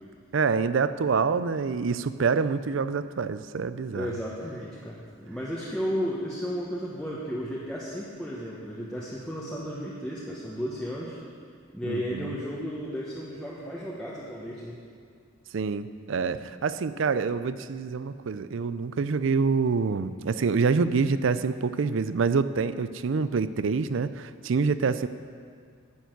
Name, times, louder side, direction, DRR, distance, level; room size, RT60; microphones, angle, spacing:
voice 1, 0.3-4.1 11.9-12.4 15.5-25.1, right 5 dB, 65° right, 14 dB, 0.4 m, -26 dB
voice 2, 3.9-11.2 11.7-14.8, equal, 5° left, -7 dB, 1.1 m, -34 dB
10.5 x 7.1 x 9.2 m, 2.2 s
head